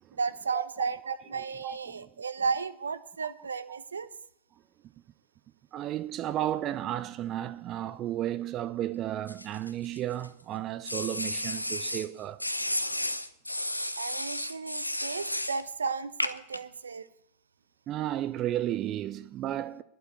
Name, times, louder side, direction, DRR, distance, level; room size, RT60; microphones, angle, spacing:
voice 1, 0.2-4.1 14.0-17.1, right 5 dB, 75° right, 0.7 m, -34 dB
voice 2, 1.3-2.1 3.2-3.3 3.7-3.8 5.7-12.4 17.9-19.8, right 12 dB, 35° right, 0.6 m, -33 dB
sound 1, 9.3-10.3 10.9-12.1 12.4-15.6 16.2-16.6, left 1 dB, 85° left, 0.7 m, -33 dB
11.5 x 8.2 x 9.1 m
figure-of-eight pair, 90°, 0 cm